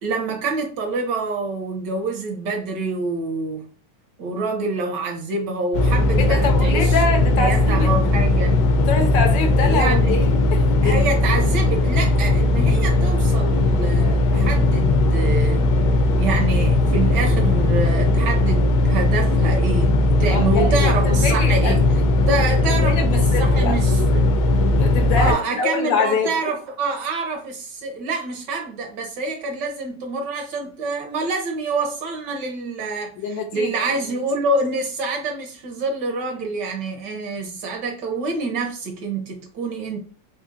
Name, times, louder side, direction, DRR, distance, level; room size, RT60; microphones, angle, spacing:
voice 1, 0.0-3.6 4.2-7.0 7.4-8.7 9.6-10.1 10.8-15.6 16.1-21.9 22.3-24.3 25.2-40.0, right 3 dB, 70° right, 1.2 m, -26 dB
sound 1, 5.7-25.3, left 2 dB, 85° left, 1.4 m, -18 dB
voice 2, 6.2-7.9 8.9-11.0 20.3-21.7 22.6-23.7 24.8-26.3 33.2-33.7, left 4 dB, 70° left, 1.3 m, -24 dB
3.9 x 2.7 x 2.5 m
omnidirectional pair, 2.2 m